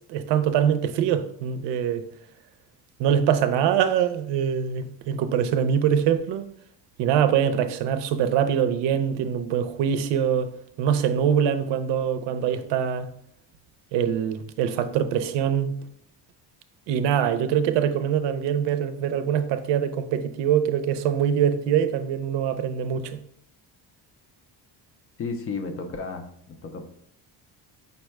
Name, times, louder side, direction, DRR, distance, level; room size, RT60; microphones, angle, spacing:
voice 1, 0.1-2.0 3.0-6.5 7.0-10.5 10.8-13.1 13.9-15.7 16.9-23.2, right 8 dB, 85° right, 0.6 m, -23 dB
voice 2, 25.2-26.8, left 4 dB, 35° left, 0.4 m, -33 dB
5.4 x 2.1 x 4.4 m
cardioid pair, 175°, 42 cm